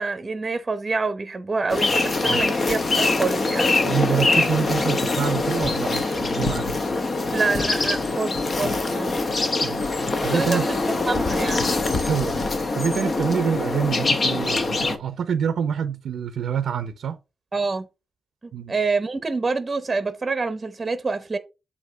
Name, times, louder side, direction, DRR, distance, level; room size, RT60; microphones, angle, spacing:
voice 1, 0.0-3.7 7.3-9.2 10.3-10.8 11.1-11.7 17.5-17.9 18.4-21.4, right 4 dB, 30° right, 0.8 m, -26 dB
sound 1, 1.7-15.0, left 3 dB, 40° left, 1.1 m, -23 dB
voice 2, 3.8-6.8 9.6-9.9 10.2-10.7 12.1-12.5 12.7-17.2 18.5-18.7, right 7 dB, 85° right, 0.7 m, -26 dB
8.2 x 2.8 x 5.5 m
wide cardioid pair, 125°, 0 cm